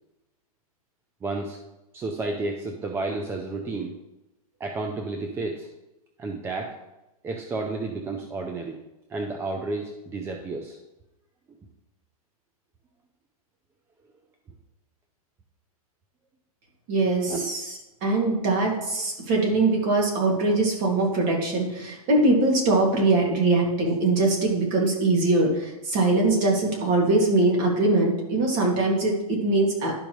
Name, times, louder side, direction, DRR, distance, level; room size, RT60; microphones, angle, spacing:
voice 1, 1.2-1.6 1.9-3.9 4.6-5.7 6.2-6.7 7.2-8.8 9.1-10.8 17.3-17.4, right 3 dB, 15° right, 3 dB, 0.5 m, -31 dB
voice 2, 16.9-29.9, right 2 dB, 40° right, -1 dB, 2.3 m, -22 dB
11.5 x 5.3 x 3.1 m, 0.98 s
hypercardioid pair, 140°, 19 cm